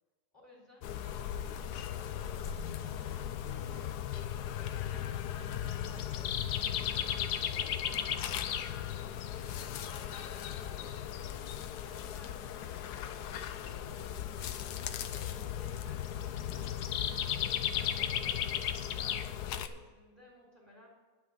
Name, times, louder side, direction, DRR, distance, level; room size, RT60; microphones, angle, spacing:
voice 1, 0.3-0.9 1.9-5.2 5.8-6.3 6.7-9.1 9.5-14.2 14.8-16.9 17.7-20.9, equal, 5° right, -4 dB, 3.5 m, -57 dB
sound 1, 0.8-19.7, left 10 dB, 75° left, 0.9 m, -36 dB
10.5 x 5.9 x 8.5 m, 1.4 s
omnidirectional pair, 2.3 m